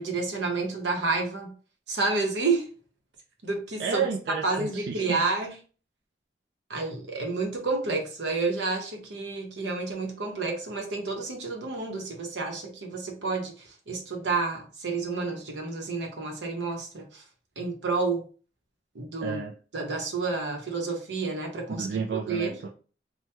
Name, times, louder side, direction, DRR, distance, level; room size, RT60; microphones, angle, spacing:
voice 1, 0.0-1.5 1.9-2.7 3.4-4.0 4.4-5.5 6.7-17.2 17.6-18.3 18.9-19.4 19.7-21.9 22.3-22.6, right 3 dB, 85° right, 3 dB, 0.8 m, -30 dB
voice 2, 3.8-5.3 19.2-19.5 21.7-22.7, right 6 dB, 65° right, 1 dB, 0.3 m, -31 dB
2.9 x 2.2 x 3.3 m, 0.38 s
head